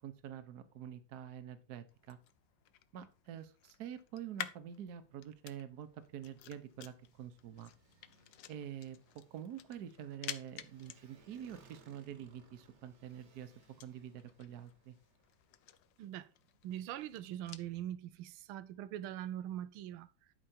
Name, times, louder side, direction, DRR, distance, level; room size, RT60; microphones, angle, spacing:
voice 1, 0.0-2.2 2.9-7.7 8.5-9.0 9.3-13.5 13.8-14.9, right 9 dB, 55° right, 1.3 m, -47 dB
sound 1, 1.9-17.7, left 11 dB, 70° left, 1.3 m, -52 dB
Motorcycle, 4.8-15.5, right 4 dB, 40° right, 1.4 m, -67 dB
voice 2, 16.0-16.3 16.6-20.1, right 12 dB, 85° right, 1.5 m, -42 dB
11.5 x 5.1 x 4.4 m
omnidirectional pair, 2.2 m